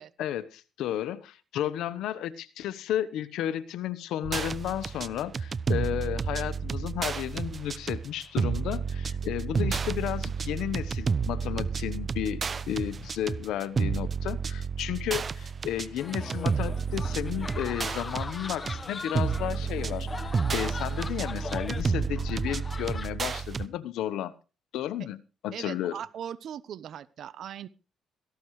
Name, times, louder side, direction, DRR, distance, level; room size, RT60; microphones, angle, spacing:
voice 1, 0.2-20.1 20.5-24.3 24.7-26.0, left 11 dB, 85° left, 15 dB, 1.0 m, -33 dB
sound 1, 4.2-23.7, right 5 dB, 40° right, 0.7 m, -31 dB
sound 2, 16.0-23.1, left 4 dB, 30° left, 1.2 m, -40 dB
voice 2, 25.5-27.7, right 9 dB, 70° right, 18 dB, 0.9 m, -39 dB
17.5 x 15.0 x 3.2 m, 0.33 s
cardioid pair, 90°, 0 cm